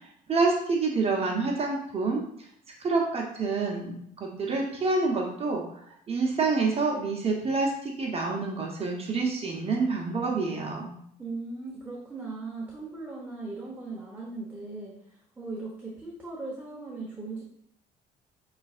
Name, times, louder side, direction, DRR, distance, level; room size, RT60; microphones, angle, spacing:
voice 1, 0.0-2.2 2.8-10.9, right 3 dB, 35° right, -1 dB, 0.9 m, -28 dB
voice 2, 11.2-17.4, right 3 dB, 10° right, -5 dB, 1.0 m, -38 dB
5.9 x 3.2 x 2.4 m, 0.69 s
cardioid pair, 110°, 17 cm